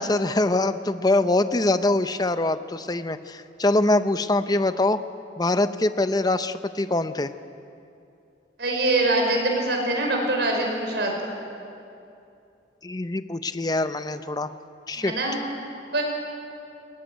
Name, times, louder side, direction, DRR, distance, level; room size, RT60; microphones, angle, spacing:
voice 1, 0.0-5.0 5.4-7.3 12.8-14.5 14.9-15.1, left 2 dB, 20° left, 11 dB, 0.7 m, -23 dB
voice 2, 8.6-11.2 15.0-15.4 15.9-16.0, right 2 dB, 70° right, 1 dB, 5.2 m, -23 dB
21.5 x 19.0 x 9.6 m, 2.6 s
head